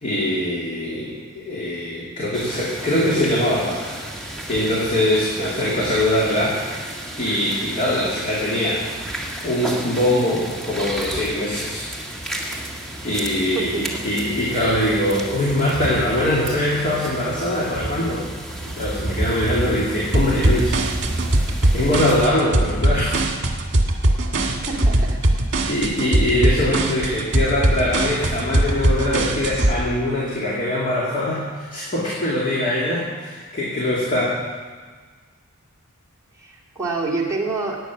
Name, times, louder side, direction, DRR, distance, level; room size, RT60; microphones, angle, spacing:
voice 1, 0.0-6.6 7.2-8.8 9.4-11.9 13.0-18.3 18.6-20.7 21.7-23.2 25.7-34.4, left 1 dB, 35° left, -6 dB, 2.7 m, -22 dB
sound 1, 2.3-22.2, right 1 dB, ahead, 1.8 m, -31 dB
sound 2, 20.1-29.7, right 1 dB, 55° right, 1.8 m, -20 dB
voice 2, 24.7-25.2 36.4-37.8, right 3 dB, 15° right, -5 dB, 2.6 m, -26 dB
17.5 x 9.4 x 6.2 m, 1.5 s
head